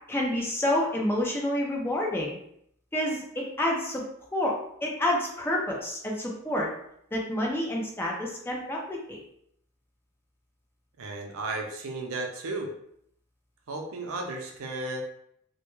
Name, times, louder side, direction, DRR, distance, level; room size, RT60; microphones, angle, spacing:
voice 1, 0.1-2.4 2.9-4.0 4.3-4.5 4.8-6.7 7.1-9.2, left 1 dB, 10° left, -2 dB, 0.4 m, -28 dB
voice 2, 11.0-12.7 13.7-15.0, right 2 dB, 85° right, 2 dB, 0.5 m, -34 dB
2.2 x 2.2 x 3.0 m, 0.71 s
head